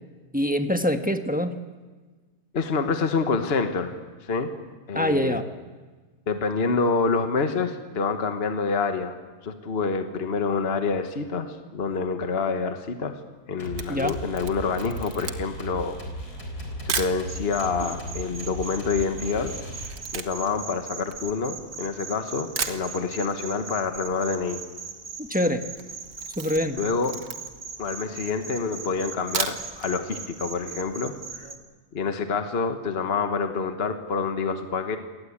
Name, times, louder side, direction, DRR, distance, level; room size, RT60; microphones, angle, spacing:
voice 1, 0.3-1.5 4.9-5.4 13.9-14.2 25.2-25.6 26.4-26.8, equal, 5° right, 6 dB, 1.0 m, -24 dB
voice 2, 2.5-3.9 4.2-4.5 4.9-5.4 6.3-9.2 9.4-13.2 13.5-16.0 16.8-19.5 20.1-24.6 26.8-27.2 27.8-31.5 31.9-35.0, left 4 dB, 40° left, 7 dB, 1.4 m, -27 dB
Camera, 13.4-17.2 17.9-18.0 18.2-21.9 22.3-22.4 22.6-23.4 23.7-23.8 24.1-24.2 24.3-24.8 25.1-25.3 25.7-27.7 28.2-28.3 29.1-29.9 30.3-30.4 30.7-30.8, right 6 dB, 75° right, 1.8 m, -34 dB
sound 1, 13.6-20.3, equal, 80° left, 4.6 m, -37 dB
sound 2, 17.3-31.6, right 5 dB, 35° right, 2.1 m, -39 dB
27.5 x 18.5 x 8.6 m, 1.4 s
omnidirectional pair, 1.6 m